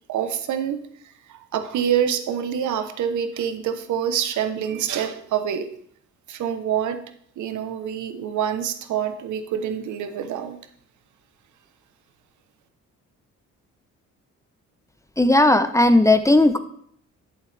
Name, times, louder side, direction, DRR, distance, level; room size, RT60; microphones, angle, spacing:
voice 1, 0.1-5.7 6.3-7.0 7.4-10.6, right 9 dB, 75° right, 9 dB, 1.0 m, -26 dB
voice 2, 15.2-16.6, left 2 dB, 10° left, 10 dB, 0.7 m, -16 dB
11.5 x 7.0 x 3.4 m, 0.65 s
cardioid pair, 90°, 30 cm